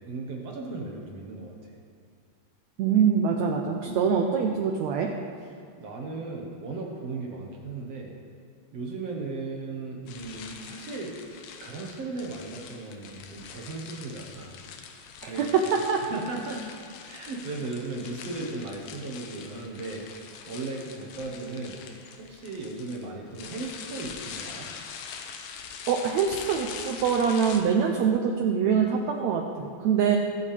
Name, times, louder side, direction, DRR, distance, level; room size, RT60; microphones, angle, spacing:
voice 1, 0.0-1.8 5.8-8.2 8.7-11.2 11.5-14.6 15.2-15.4 16.1-16.8 17.0-22.0 22.3-24.7, right 3 dB, 60° right, -1 dB, 1.9 m, -36 dB
voice 2, 2.8-5.1 15.2-15.4 15.7-16.0 25.9-30.2, right 7 dB, 80° right, 2 dB, 1.6 m, -24 dB
sound 1, 10.1-27.6, left 6 dB, 85° left, 2.8 m, -43 dB
23.0 x 8.5 x 3.4 m, 2.2 s
omnidirectional pair, 4.1 m